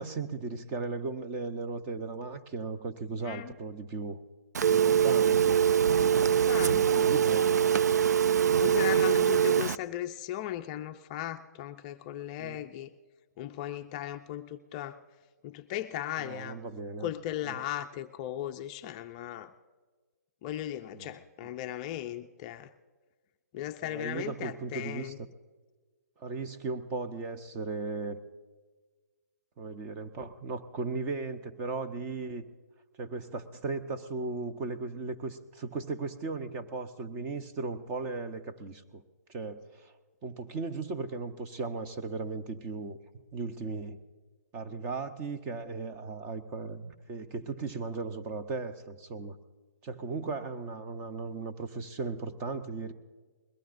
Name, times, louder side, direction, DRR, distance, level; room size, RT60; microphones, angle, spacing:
voice 1, 0.0-4.2 4.7-5.6 5.9-7.7 12.4-12.7 16.2-17.1 17.4-17.6 20.9-21.5 23.8-25.1 26.2-28.2 29.6-32.4 33.0-39.0 39.3-39.9 40.2-43.0 43.3-44.0 44.5-49.4 49.8-52.9, right 3 dB, 20° right, 8 dB, 0.8 m, -37 dB
Telephone, 4.5-9.8, right 8 dB, 80° right, 0.4 m, -23 dB
voice 2, 6.2-6.8 8.6-12.9 13.4-15.0 15.4-16.6 17.0-19.5 20.4-22.7 23.5-25.2, left 12 dB, 25° left, 7 dB, 0.4 m, -37 dB
21.5 x 18.0 x 2.6 m, 1.4 s
hypercardioid pair, 155°, 9 cm